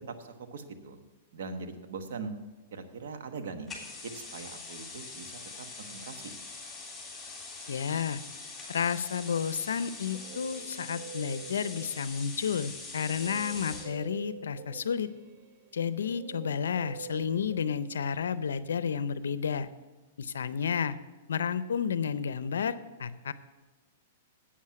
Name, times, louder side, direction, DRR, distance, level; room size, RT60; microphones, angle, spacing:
voice 1, 0.2-1.0 1.3-2.3 2.7-3.7 4.0-5.3 5.6-6.3, right 4 dB, 70° right, 7 dB, 1.1 m, -41 dB
sound 1, 3.7-13.9, left 4 dB, 10° left, 3.6 m, -43 dB
voice 2, 7.7-8.2 8.7-15.1 15.7-19.7 20.2-21.0 21.3-23.3, left 7 dB, 85° left, 15 dB, 0.5 m, -31 dB
Guitar, 9.8-12.3 13.1-18.5, right 6 dB, 50° right, 0.9 m, -47 dB
8.5 x 7.4 x 7.4 m, 1.2 s
hypercardioid pair, 125°, 0 cm